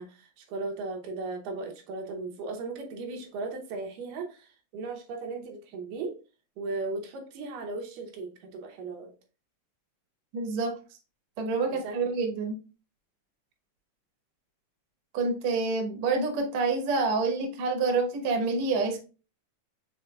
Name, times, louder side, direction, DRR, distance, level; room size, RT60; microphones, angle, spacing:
voice 1, 0.0-6.2 6.6-9.1 11.7-12.0, right 3 dB, 85° right, 2 dB, 2.5 m, -37 dB
voice 2, 10.3-10.7 11.4-12.6 15.1-19.0, right 3 dB, 65° right, 3 dB, 2.0 m, -27 dB
5.7 x 4.1 x 2.3 m, 0.32 s
omnidirectional pair, 3.7 m